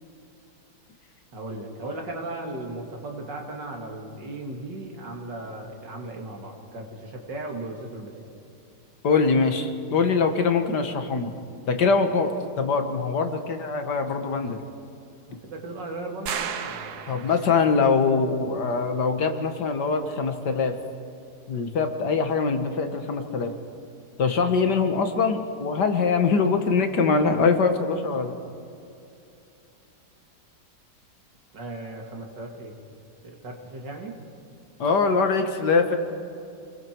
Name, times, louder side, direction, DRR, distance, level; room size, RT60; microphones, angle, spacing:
voice 1, 1.3-8.3 15.3-17.2 31.5-32.7 33.2-34.2, right 2 dB, 85° right, 1 dB, 3.1 m, -37 dB
voice 2, 9.0-11.3 11.7-14.6 17.1-20.8 21.5-23.6 24.2-28.4 34.8-36.0, left 4 dB, 70° left, 6 dB, 2.0 m, -23 dB
sound 1, 16.3-17.7, right 7 dB, 65° right, 1.5 m, -33 dB
29.0 x 21.0 x 4.6 m, 2.7 s
omnidirectional pair, 1.9 m